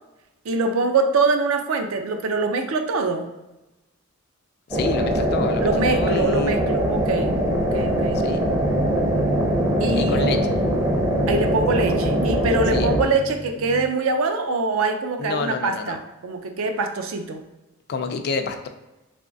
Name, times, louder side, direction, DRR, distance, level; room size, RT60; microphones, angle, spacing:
voice 1, 0.4-3.3 5.6-8.2 9.8-10.3 11.3-17.4, right 3 dB, 70° right, 6 dB, 0.4 m, -24 dB
voice 2, 4.7-6.6 8.2-8.4 10.0-10.4 12.7-12.9 15.2-16.0 17.9-18.7, left 4 dB, 50° left, 7 dB, 0.3 m, -28 dB
sound 1, 4.7-13.0, equal, 15° right, 0.5 m, -22 dB
sound 2, 8.6-13.9, equal, 80° left, 0.8 m, -31 dB
3.4 x 3.0 x 2.6 m, 1.0 s
head